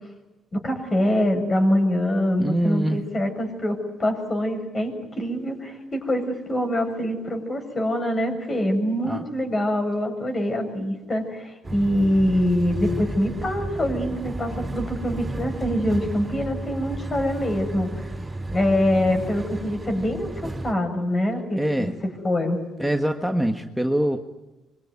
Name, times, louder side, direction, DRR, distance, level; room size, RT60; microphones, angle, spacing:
voice 1, 0.5-17.9 18.5-21.9 22.2-22.6, left 1 dB, 35° left, 5 dB, 7.6 m, -24 dB
voice 2, 2.4-3.0 9.0-9.2 21.6-22.0 22.8-24.2, right 1 dB, ahead, 4 dB, 1.6 m, -24 dB
sound 1, 11.6-20.7, right 1 dB, 15° right, 4.3 m, -32 dB
25.5 x 23.0 x 9.7 m, 1.0 s
cardioid pair, 90°, 0 cm